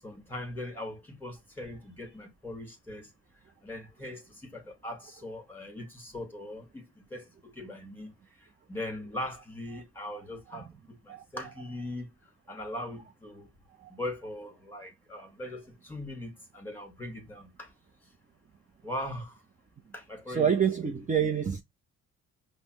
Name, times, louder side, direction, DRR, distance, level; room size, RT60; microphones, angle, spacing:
voice 1, 0.0-3.1 3.6-8.2 8.7-10.7 11.0-12.1 12.5-13.5 13.9-17.7 18.8-19.4 19.9-20.5, left 1 dB, 5° left, 1.9 m, -40 dB
voice 2, 20.3-21.6, right 7 dB, 25° right, 0.5 m, -27 dB
5.2 x 2.1 x 3.0 m
cardioid pair, 85°, 32 cm